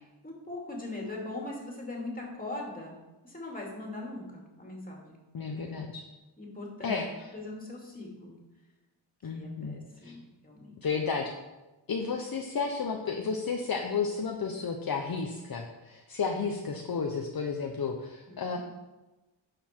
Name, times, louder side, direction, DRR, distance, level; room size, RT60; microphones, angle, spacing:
voice 1, 0.2-5.2 5.5-5.7 6.4-6.9 7.3-8.4 9.2-10.7 18.3-18.6, left 2 dB, 20° left, -1 dB, 2.6 m, -41 dB
voice 2, 5.3-6.0 6.8-7.3 9.2-9.8 10.0-10.1 10.8-11.3 11.9-18.6, left 5 dB, 50° left, 2 dB, 0.9 m, -32 dB
11.5 x 7.1 x 4.5 m, 1.1 s
wide cardioid pair, 140°, 47 cm